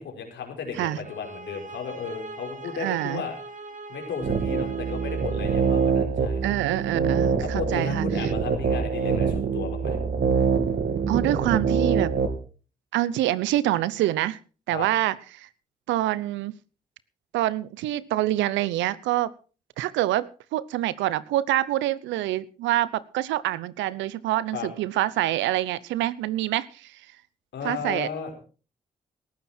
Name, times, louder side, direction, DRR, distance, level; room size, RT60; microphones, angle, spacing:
voice 1, 0.0-3.3 3.9-6.5 7.4-10.0 14.7-14.9 24.5-24.7 27.5-28.3, left 6 dB, 80° left, 3 dB, 5.0 m, -34 dB
sound 1, 1.0-6.0, right 3 dB, 45° right, 3.4 m, -41 dB
voice 2, 2.8-3.2 6.4-8.1 11.1-12.2 12.9-14.4 14.7-15.5 15.9-16.5 17.3-19.3 19.8-27.0 27.6-28.1, right 14 dB, 90° right, 19 dB, 0.8 m, -26 dB
sound 2, 4.2-12.3, right 5 dB, 60° right, 2.7 m, -25 dB
18.0 x 14.0 x 4.4 m, 0.37 s
supercardioid pair, 45°, 19 cm